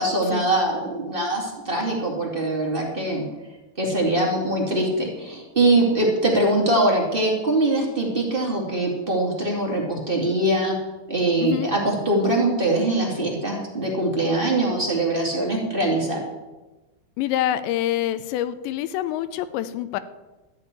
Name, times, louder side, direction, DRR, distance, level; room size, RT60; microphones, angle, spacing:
voice 1, 0.0-3.3 3.8-10.7 11.1-16.2, right 1 dB, 25° right, -2 dB, 1.1 m, -22 dB
voice 2, 17.2-20.0, left 12 dB, 80° left, 13 dB, 2.8 m, -26 dB
13.0 x 7.1 x 9.6 m, 1.1 s
omnidirectional pair, 5.3 m